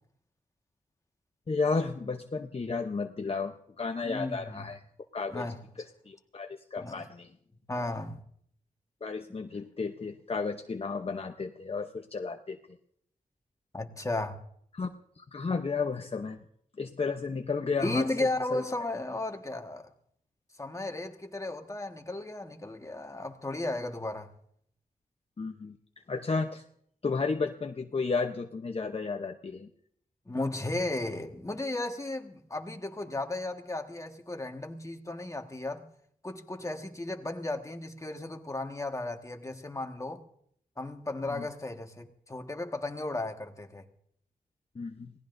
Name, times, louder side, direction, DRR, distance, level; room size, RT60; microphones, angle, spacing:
voice 1, 1.5-4.8 5.1-5.5 6.1-7.3 9.0-12.6 14.7-14.9 15.2-16.4 16.8-18.6 25.4-25.8 26.1-26.6 27.0-29.7 41.2-41.5 44.7-45.1, left 4 dB, 45° left, 0.8 m, -33 dB
voice 2, 4.0-4.7 5.3-5.6 6.8-7.0 7.7-8.2 13.7-14.4 17.8-19.9 20.6-24.3 30.3-35.9 36.2-40.2 40.8-43.8, left 2 dB, 20° left, 1.6 m, -35 dB
27.0 x 18.0 x 2.6 m
wide cardioid pair, 75°, 15 cm